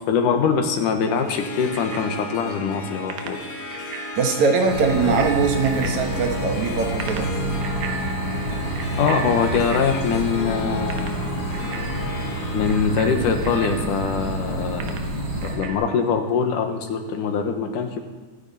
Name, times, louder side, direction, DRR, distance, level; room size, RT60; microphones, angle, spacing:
voice 1, 0.0-3.4 5.0-5.2 9.0-11.1 12.5-15.1 15.4-18.0, left 6 dB, 85° left, 5 dB, 2.9 m, -23 dB
Harp, 1.0-15.5, left 3 dB, 60° left, 0.9 m, -35 dB
Bicycle bell, 1.7-15.7, right 6 dB, 85° right, 2.7 m, -38 dB
voice 2, 4.2-7.3, right 5 dB, 65° right, 3 dB, 2.7 m, -21 dB
sound 1, 4.6-15.6, right 1 dB, 35° right, 4.7 m, -28 dB
24.5 x 9.8 x 4.2 m, 1.3 s
omnidirectional pair, 3.6 m